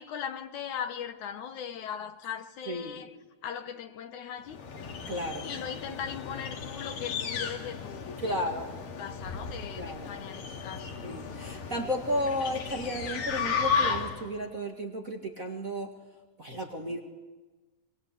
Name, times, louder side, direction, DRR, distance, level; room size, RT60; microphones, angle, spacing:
voice 1, 0.0-3.2 3.4-4.6 5.4-8.5 9.0-11.0, left 8 dB, 70° left, 2.4 m, -39 dB
voice 2, 2.7-3.0 5.1-5.5 8.2-8.7 9.8-10.2 11.0-15.9 16.4-17.0, equal, 30° right, 1.8 m, -33 dB
sound 1, 4.5-14.3, left 5 dB, 85° left, 4.0 m, -34 dB
25.0 x 24.0 x 8.4 m
omnidirectional pair, 3.9 m